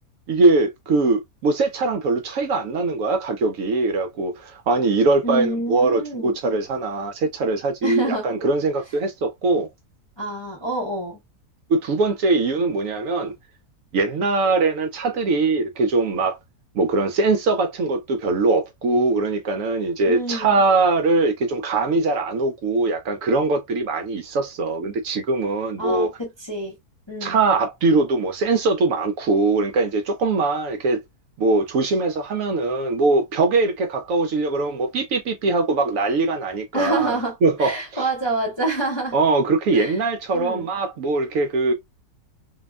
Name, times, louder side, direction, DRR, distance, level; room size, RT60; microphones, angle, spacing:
voice 1, 0.3-9.7 11.7-13.3 13.9-16.4 16.7-26.1 27.2-31.0 31.4-38.0 39.1-41.7, right 3 dB, 70° right, 0.8 m, -21 dB
voice 2, 5.2-6.3 7.8-8.3 10.2-11.2 20.0-20.6 25.8-26.7 27.1-27.4 36.7-39.2 39.7-40.0 40.3-40.7, right 2 dB, 25° left, 0.6 m, -27 dB
2.7 x 2.1 x 2.3 m
omnidirectional pair, 1.6 m